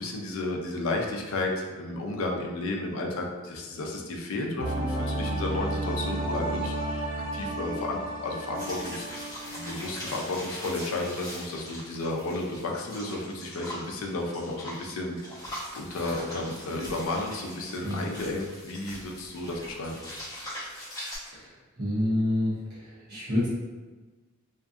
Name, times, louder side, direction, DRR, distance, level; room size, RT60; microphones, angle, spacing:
voice 1, 0.0-9.2 9.5-15.2 15.7-20.0, left 2 dB, 65° left, 1 dB, 0.4 m, -33 dB
sound 1, 4.6-10.2 10.5-10.6, right 1 dB, 80° right, 1.0 m, -32 dB
sound 2, 8.5-21.2, equal, 15° left, 0.9 m, -41 dB
voice 2, 21.8-22.8 23.1-23.5, left 1 dB, 45° right, -9 dB, 0.7 m, -27 dB
2.5 x 2.4 x 2.4 m, 1.3 s
head